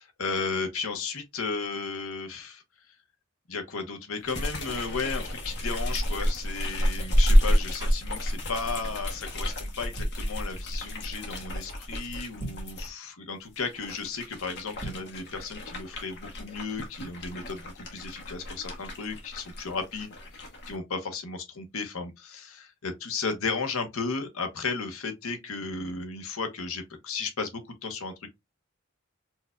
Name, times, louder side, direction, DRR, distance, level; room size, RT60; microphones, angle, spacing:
voice 1, 0.2-2.6 3.5-20.1 20.7-28.4, left 4 dB, 80° left, 0.9 m, -34 dB
sound 1, 4.3-12.9 13.5-20.8, equal, 55° left, 1.0 m, -29 dB
sound 2, 5.9-8.6 8.8-9.1 9.7-10.2 12.2-12.8 14.7-15.2, right 2 dB, 20° right, 1.4 m, -44 dB
4.5 x 2.5 x 2.2 m
head